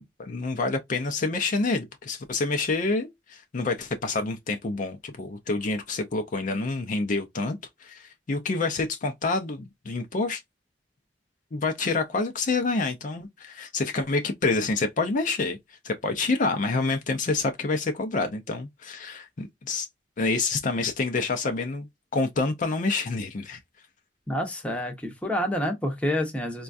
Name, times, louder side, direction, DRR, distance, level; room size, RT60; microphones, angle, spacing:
voice 1, 0.0-10.4 11.5-19.9 20.2-21.9 22.1-23.6, left 3 dB, 45° left, 0.5 m, -27 dB
voice 2, 24.3-26.6, equal, 5° left, 0.7 m, -28 dB
4.3 x 2.3 x 2.4 m
head